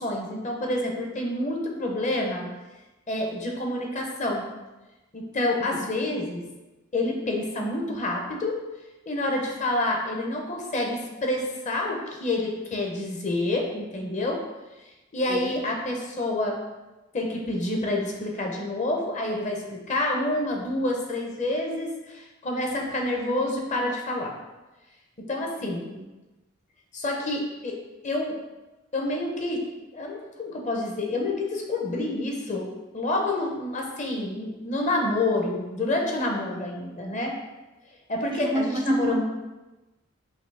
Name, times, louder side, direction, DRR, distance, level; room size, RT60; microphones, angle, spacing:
voice 1, 0.0-2.5 3.1-4.5 5.1-6.5 6.9-8.6 9.1-14.4 15.1-16.6 17.1-24.3 25.2-25.9 26.9-27.8 28.0-28.4 28.9-29.6 29.9-37.3 38.1-39.2, left 2 dB, 35° left, 0 dB, 0.7 m, -28 dB
voice 2, 38.3-39.2, right 1 dB, 25° right, 2 dB, 0.3 m, -28 dB
5.6 x 2.8 x 3.4 m, 1.1 s
head